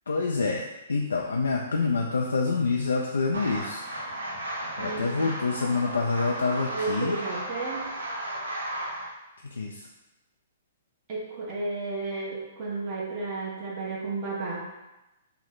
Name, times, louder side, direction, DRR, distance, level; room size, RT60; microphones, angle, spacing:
voice 1, 0.1-3.8 4.8-7.2 9.5-9.9, left 4 dB, 85° left, 0 dB, 0.3 m, -27 dB
sound 1, 3.3-9.1, right 1 dB, 90° right, 0.8 m, -35 dB
voice 2, 4.8-5.3 6.7-7.8 11.1-14.7, right 3 dB, 35° right, -4 dB, 1.0 m, -33 dB
3.1 x 2.1 x 3.8 m, 0.98 s
hypercardioid pair, 130°, 0 cm